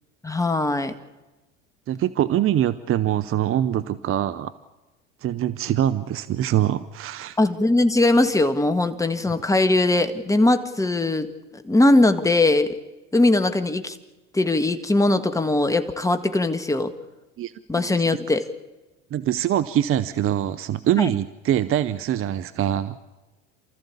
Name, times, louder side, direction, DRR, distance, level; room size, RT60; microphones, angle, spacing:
voice 1, 0.2-0.9 7.4-11.3 11.6-12.7 13.1-13.9 14.3-16.9 17.7-18.4 21.0-21.1, left 2 dB, 10° left, 9 dB, 1.7 m, -20 dB
voice 2, 1.9-4.5 5.2-7.4 17.4-18.0 19.1-23.0, right 11 dB, 35° right, 16 dB, 0.8 m, -24 dB
28.5 x 14.0 x 8.5 m, 1.1 s
hypercardioid pair, 80°, 38 cm